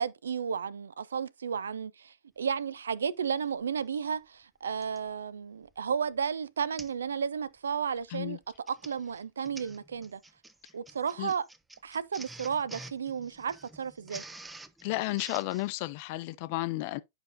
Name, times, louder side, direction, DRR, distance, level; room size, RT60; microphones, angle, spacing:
voice 1, 0.0-8.4 8.7-10.2 10.7-11.5 11.8-14.2, right 7 dB, 75° right, 0.5 m, -33 dB
Printer, 3.6-3.7 4.8-5.1 5.7-5.9 6.2-6.3 6.8-7.1 7.4-7.7 8.4-15.7, right 2 dB, 10° right, 0.6 m, -48 dB
voice 2, 14.8-17.0, left 19 dB, 50° left, 0.6 m, -32 dB
11.0 x 5.1 x 2.6 m
figure-of-eight pair, 95°, 0 cm